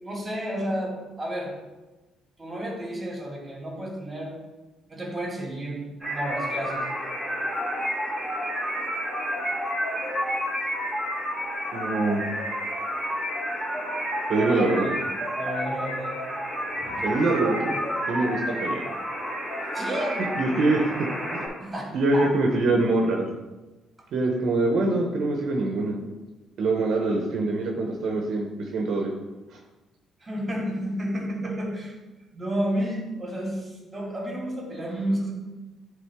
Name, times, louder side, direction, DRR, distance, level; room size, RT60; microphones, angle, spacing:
voice 1, 0.0-1.6 2.4-4.3 4.9-6.9 15.4-16.2 16.7-17.1 19.7-20.2 21.6-22.3 30.2-31.9 32.3-35.3, equal, 15° right, -3 dB, 2.4 m, -31 dB
sound 1, 6.0-21.5, equal, 5° left, 1.9 m, -30 dB
voice 2, 11.7-12.2 14.3-14.9 17.0-17.8 18.1-18.8 20.4-20.9 21.3-21.4 21.9-23.3 24.1-26.0 26.6-29.1, right 2 dB, 65° right, 1 dB, 1.0 m, -24 dB
10.5 x 3.6 x 3.6 m, 1.1 s
cardioid pair, 130°, 0 cm